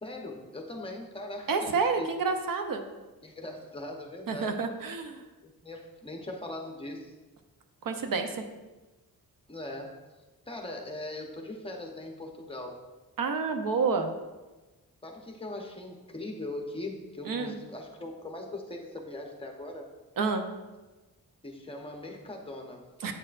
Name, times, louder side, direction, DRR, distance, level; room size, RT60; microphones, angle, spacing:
voice 1, 0.0-1.7 2.0-2.1 3.2-4.6 5.4-7.1 9.5-9.9 10.5-12.8 15.0-19.9 21.4-22.8, left 1 dB, 15° left, 1 dB, 0.8 m, -40 dB
voice 2, 1.5-2.8 4.3-5.2 7.8-8.4 13.2-14.1 17.3-17.5 20.2-20.4 23.0-23.1, right 4 dB, 70° right, 6 dB, 0.7 m, -29 dB
8.7 x 6.3 x 2.5 m, 1.2 s
wide cardioid pair, 150°, 35 cm